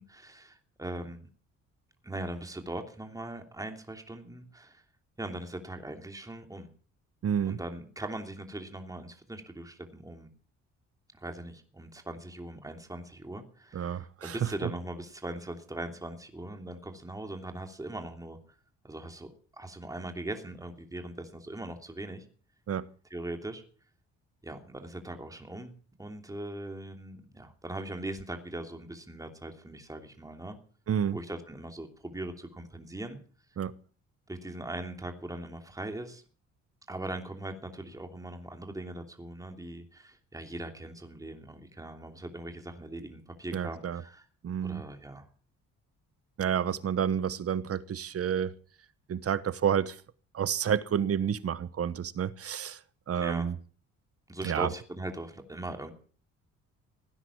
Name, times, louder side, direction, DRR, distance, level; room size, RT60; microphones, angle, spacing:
voice 1, 0.1-1.3 2.0-4.8 5.2-6.7 7.4-10.3 11.1-18.4 18.8-19.3 19.6-22.2 23.1-23.6 24.4-25.7 26.0-30.6 31.1-33.2 34.3-36.2 36.9-44.3 44.6-45.3 53.1-53.5 54.3-55.9, right 1 dB, 10° right, 3.0 m, -40 dB
voice 2, 7.2-7.6 13.7-14.7 22.7-22.9 30.9-31.2 33.6-33.7 43.5-44.0 44.4-44.8 46.4-48.5 49.1-50.0 50.3-52.8 53.1-53.5 54.4-54.7, right 8 dB, 50° right, 1.1 m, -30 dB
17.5 x 10.0 x 7.2 m
cardioid pair, 90°, 30 cm